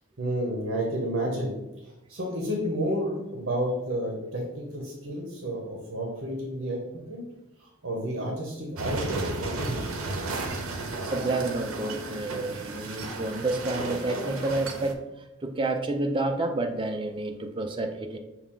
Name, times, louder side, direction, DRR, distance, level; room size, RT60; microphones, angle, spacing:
voice 1, 0.2-6.8 7.1-7.2 7.6-10.0, equal, 55° right, 0 dB, 0.8 m, -31 dB
sound 1, 8.8-14.9, right 3 dB, 85° right, 0.6 m, -34 dB
voice 2, 11.0-15.0 15.4-18.2, right 2 dB, 25° right, 5 dB, 0.3 m, -29 dB
5.8 x 2.3 x 3.6 m, 0.96 s
head